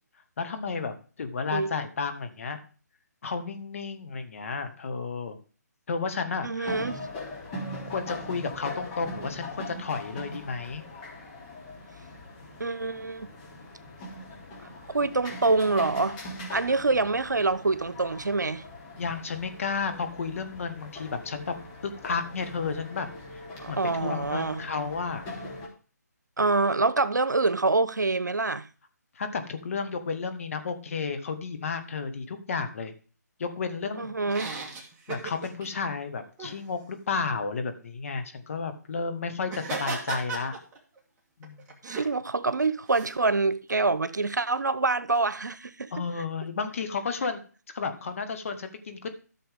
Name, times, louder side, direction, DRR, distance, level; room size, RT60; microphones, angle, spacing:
voice 1, 0.4-2.6 3.2-5.4 5.9-6.7 7.9-10.8 16.9-17.0 19.0-21.5 21.8-23.1 23.7-25.3 29.2-32.9 33.4-34.1 35.1-40.6 41.4-41.7 45.9-47.4 47.7-49.1, left 5 dB, 50° left, 1.8 m, -32 dB
voice 2, 6.4-7.0 12.6-13.3 14.9-16.2 16.5-18.6 23.6-24.7 26.4-28.7 34.0-34.6 41.8-45.9, right 3 dB, 80° right, 1.0 m, -26 dB
sound 1, 6.6-25.7, left 1 dB, 25° left, 3.5 m, -41 dB
sound 2, 34.3-35.7 36.4-36.6 39.5-41.0 41.4-42.1 42.9-43.1, right 4 dB, 15° right, 1.9 m, -36 dB
13.5 x 6.8 x 3.6 m
figure-of-eight pair, 150°, 10 cm